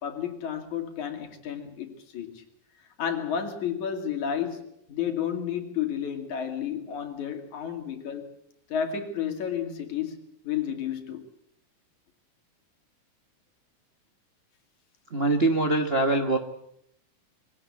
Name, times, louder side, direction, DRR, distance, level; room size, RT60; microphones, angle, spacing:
voice 1, 0.0-2.4 3.0-8.3 8.7-11.3, left 8 dB, 70° left, 5 dB, 3.8 m, -31 dB
voice 2, 15.1-16.4, right 2 dB, 45° right, 4 dB, 0.8 m, -23 dB
22.5 x 17.0 x 8.5 m, 0.72 s
omnidirectional pair, 3.6 m